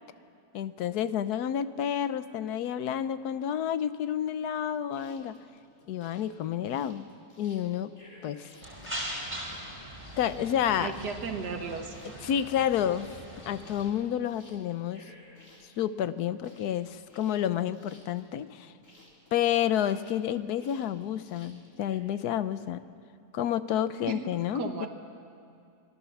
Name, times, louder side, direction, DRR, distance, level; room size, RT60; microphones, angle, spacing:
voice 1, 0.5-5.4 5.9-7.0 7.4-7.9 8.2-8.5 10.2-10.9 12.2-13.1 13.5-15.0 15.8-18.7 19.3-22.8 23.3-24.9, left 10 dB, 70° left, 13 dB, 1.2 m, -30 dB
sound 1, 4.9-22.0, left 1 dB, 45° left, 3.7 m, -57 dB
sound 2, 8.6-13.9, equal, 5° right, 4.8 m, -41 dB
voice 2, 10.8-12.0 24.1-24.2 24.5-24.9, right 5 dB, 75° right, 4 dB, 2.0 m, -35 dB
26.0 x 18.5 x 7.1 m, 2.5 s
omnidirectional pair, 1.8 m